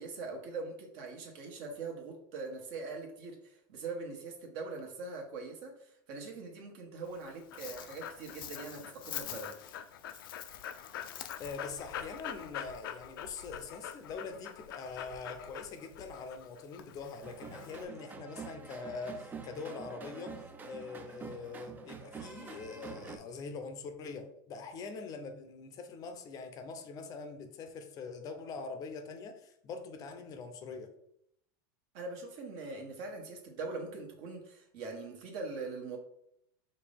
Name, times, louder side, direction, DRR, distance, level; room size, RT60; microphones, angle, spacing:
voice 1, 0.0-9.5 31.9-36.0, right 3 dB, 55° right, 1 dB, 1.3 m, -42 dB
Dog, 7.0-17.8, left 9 dB, 85° left, 0.5 m, -44 dB
voice 2, 11.4-30.9, left 4 dB, 35° left, 7 dB, 0.5 m, -43 dB
sound 1, 17.2-23.2, right 5 dB, 15° right, 0.4 m, -47 dB
5.1 x 2.7 x 3.4 m, 0.76 s
supercardioid pair, 140°, 11 cm